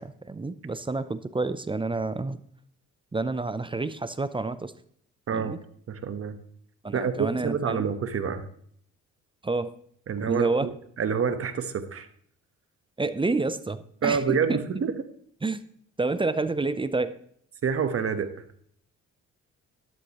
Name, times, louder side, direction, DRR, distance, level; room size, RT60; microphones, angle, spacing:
voice 1, 0.0-2.4 3.1-4.7 5.3-5.6 6.8-7.9 9.4-9.7 10.2-10.7 13.0-14.6 15.4-15.6 16.0-17.1, right 3 dB, 15° right, 13 dB, 0.6 m, -29 dB
voice 2, 5.3-5.6 5.9-6.4 6.9-8.5 10.1-10.7 11.0-12.1 14.0-14.9 17.6-18.3, right 6 dB, 50° right, 10 dB, 1.2 m, -27 dB
13.0 x 12.0 x 3.1 m, 0.63 s
cardioid pair, 90°, 30 cm